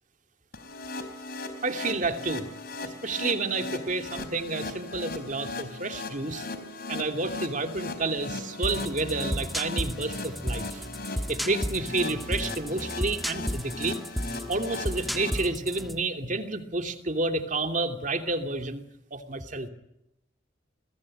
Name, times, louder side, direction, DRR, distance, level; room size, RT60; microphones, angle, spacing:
sound 1, 0.5-15.3, left 2 dB, 50° left, 4.0 m, -38 dB
voice 1, 1.6-2.5 2.8-6.5 6.9-10.8 11.1-14.0 14.5-18.8 19.1-19.7, right 3 dB, 40° right, 6 dB, 2.7 m, -30 dB
sound 2, 8.6-16.0, equal, ahead, 1.5 m, -33 dB
30.0 x 22.0 x 8.8 m, 0.83 s
head